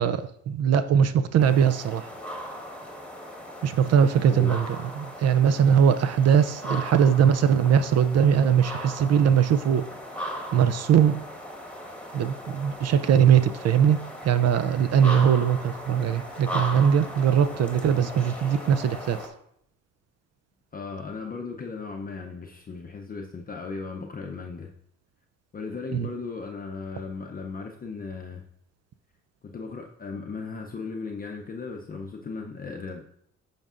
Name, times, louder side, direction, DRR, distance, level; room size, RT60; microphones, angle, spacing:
voice 1, 0.0-2.1 3.6-4.7 5.0-9.8 10.5-11.2 12.1-19.2 25.9-26.1, right 8 dB, 60° right, 11 dB, 0.4 m, -21 dB
sound 1, 1.4-19.3, equal, 5° left, 1.2 m, -38 dB
voice 2, 4.2-4.5 20.7-24.7 25.5-28.4 29.4-33.0, left 4 dB, 30° left, 1 dB, 0.6 m, -36 dB
9.0 x 5.3 x 2.5 m, 0.70 s
cardioid pair, 90°, 30 cm